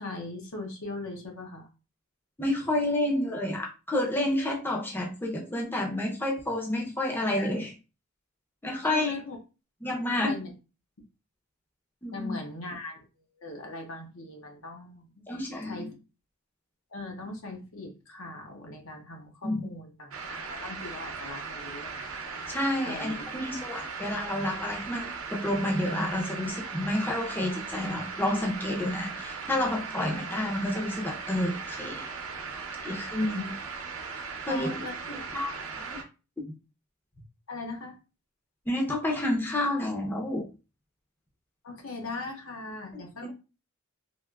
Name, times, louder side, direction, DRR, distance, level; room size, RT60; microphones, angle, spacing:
voice 1, 0.0-1.7 8.8-9.4 10.1-10.5 12.1-13.0 13.4-15.1 15.6-15.9 16.9-22.1 22.8-23.2 33.2-33.5 34.5-35.1 37.5-37.9 41.6-43.3, left 2 dB, 70° left, 1 dB, 0.9 m, -39 dB
voice 2, 2.4-7.7 8.6-9.1 9.8-10.3 12.0-12.4 15.3-15.9 19.4-19.6 22.5-32.1 32.8-33.4 34.2-34.7 35.1-36.0 38.7-40.5 43.2-43.3, left 1 dB, 10° left, -1 dB, 0.5 m, -30 dB
sound 1, 20.1-36.0, right 5 dB, 75° right, 0.6 m, -38 dB
3.4 x 2.5 x 2.3 m, 0.31 s
head